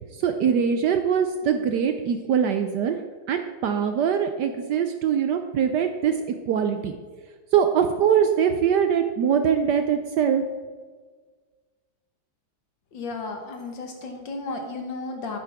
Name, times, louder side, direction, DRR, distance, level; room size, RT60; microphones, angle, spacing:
voice 1, 0.2-3.0 3.3-6.1 6.4-7.0 7.5-10.4, right 8 dB, 75° right, 7 dB, 1.0 m, -22 dB
voice 2, 12.9-15.4, left 3 dB, 65° left, 3 dB, 2.0 m, -33 dB
11.0 x 8.6 x 3.5 m, 1.5 s
omnidirectional pair, 2.2 m